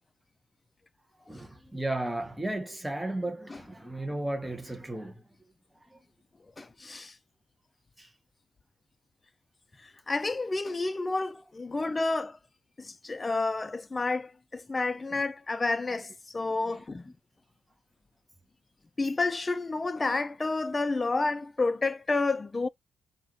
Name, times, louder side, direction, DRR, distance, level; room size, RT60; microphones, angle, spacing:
voice 1, 1.3-5.2 5.9-6.0 8.0-8.1 11.1-11.2 11.8-11.9 15.1-15.2 16.7-17.1, right 1 dB, 5° right, 0.8 m, -35 dB
voice 2, 6.6-7.2 9.8-12.4 12.8-17.1 19.0-22.7, left 3 dB, 25° left, 0.3 m, -30 dB
4.4 x 2.4 x 3.8 m
cardioid pair, 90°, 0 cm